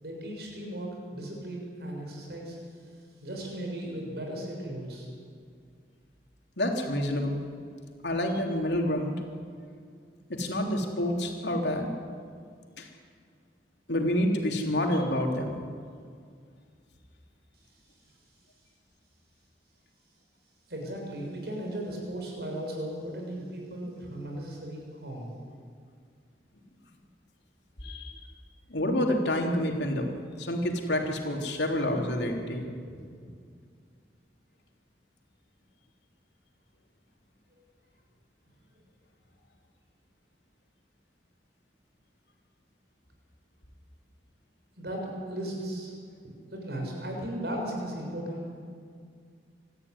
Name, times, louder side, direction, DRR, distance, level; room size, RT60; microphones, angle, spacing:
voice 1, 0.0-2.6 3.2-5.1 20.7-25.3 44.8-45.9 46.5-48.4, right 1 dB, 70° right, 0 dB, 6.7 m, -36 dB
voice 2, 6.6-7.4 8.0-9.1 10.3-11.9 12.8-12.9 13.9-15.6 27.8-28.2 28.7-30.1 30.4-32.7, left 1 dB, 85° left, 2 dB, 3.5 m, -28 dB
25.0 x 14.5 x 9.8 m, 2.1 s
head